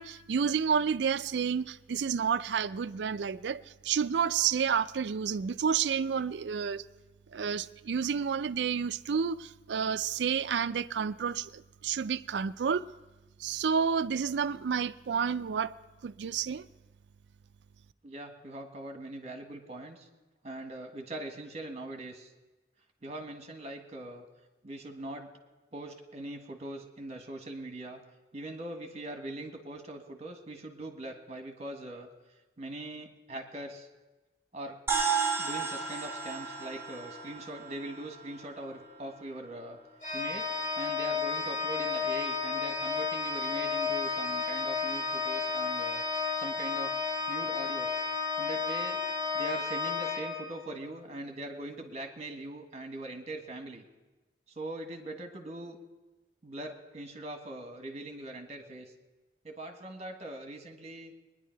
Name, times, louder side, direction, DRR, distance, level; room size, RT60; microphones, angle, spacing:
voice 1, 0.0-6.8 7.3-12.9 13.4-15.7 16.0-16.7, right 6 dB, 70° right, 0.4 m, -30 dB
voice 2, 18.0-20.1 20.4-22.3 23.0-24.2 24.6-25.3 25.7-28.0 28.3-32.1 32.6-33.9 34.5-34.8 35.4-39.8 40.1-40.5 40.8-46.0 46.4-47.0 47.3-47.9 48.4-49.0 49.3-53.8 54.5-55.8 56.4-58.9 59.4-61.1, right 1 dB, 40° right, 1.6 m, -41 dB
sound 1, 34.9-39.5, right 5 dB, 15° right, 1.7 m, -34 dB
Organ, 40.0-50.9, left 5 dB, 50° left, 3.1 m, -32 dB
21.5 x 10.5 x 4.5 m
head